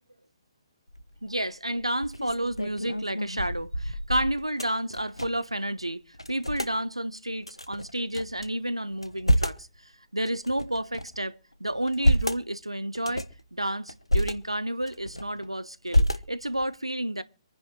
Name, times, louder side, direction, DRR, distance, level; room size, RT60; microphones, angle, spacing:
sound 1, 0.9-1.3 1.8-5.5 5.8-5.9 6.1-6.7 7.4-8.5 8.9-9.7 10.2-11.2 11.7-12.4 12.9-13.4 13.9-14.3 14.8-15.5 15.9-16.6, equal, 85° left, 1.2 m, -28 dB
voice 1, 1.2-6.0 6.3-17.2, right 1 dB, 85° right, 1.0 m, -31 dB
26.0 x 10.0 x 3.2 m
figure-of-eight pair, 135°, 3 cm